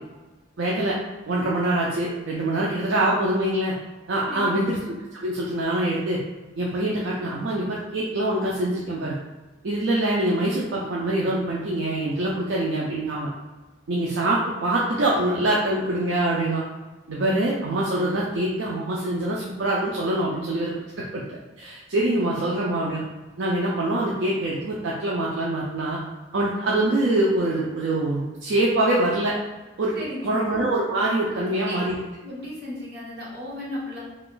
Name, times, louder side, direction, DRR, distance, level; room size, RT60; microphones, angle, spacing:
voice 1, 0.6-1.0 1.3-3.7 4.1-4.8 5.1-6.2 6.6-9.2 9.6-13.3 13.9-16.6 17.1-20.7 21.0-23.0 23.4-26.0 26.3-29.3 29.8-29.9 30.2-32.0, right 1 dB, 65° right, -4 dB, 0.4 m, -24 dB
voice 2, 4.2-4.6 29.9-30.4 31.3-31.8 32.2-34.0, left 1 dB, 50° right, -6 dB, 1.0 m, -35 dB
2.4 x 2.4 x 3.7 m, 1.2 s
head